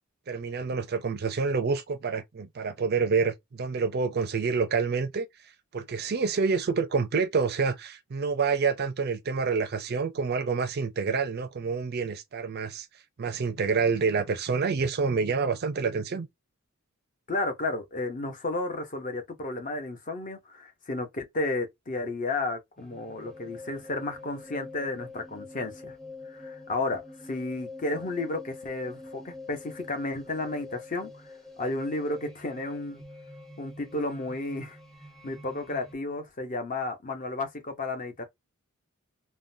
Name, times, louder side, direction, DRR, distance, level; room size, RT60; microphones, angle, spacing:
voice 1, 0.3-5.3 5.7-12.9 13.2-16.3, right 5 dB, 45° right, 0.4 m, -27 dB
voice 2, 17.3-25.9 26.3-31.3 31.6-33.0 33.6-34.8 35.2-38.2, left 2 dB, 35° left, 0.7 m, -32 dB
sound 1, 22.8-35.9, left 3 dB, ahead, 0.6 m, -45 dB
3.5 x 2.2 x 2.6 m
head